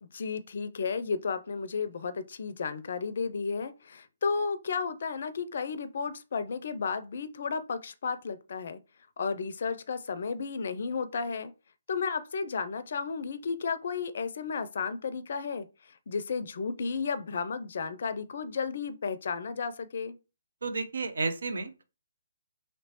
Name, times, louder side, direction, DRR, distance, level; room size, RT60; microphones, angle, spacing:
voice 1, 0.0-8.8 9.2-11.5 11.9-15.7 16.1-20.2, left 5 dB, 60° left, 0.4 m, -33 dB
voice 2, 20.6-21.8, right 3 dB, 70° right, 0.5 m, -32 dB
3.1 x 3.0 x 2.9 m
figure-of-eight pair, 140°, 0 cm